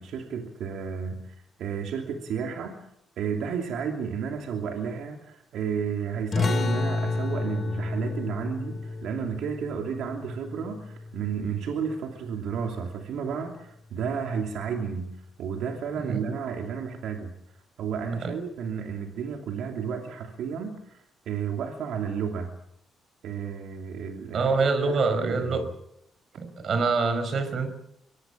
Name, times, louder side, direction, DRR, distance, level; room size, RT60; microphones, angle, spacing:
voice 1, 0.0-2.8 3.2-15.1 15.4-17.4 17.8-22.5 23.2-25.7, right 6 dB, 75° right, 3 dB, 2.8 m, -32 dB
sound 1, 6.3-11.5, left 3 dB, 45° left, 2.8 m, -30 dB
voice 2, 24.3-25.6 26.4-27.7, right 4 dB, 55° right, 10 dB, 5.2 m, -25 dB
24.0 x 19.0 x 7.3 m, 0.78 s
cardioid pair, 90°, 0 cm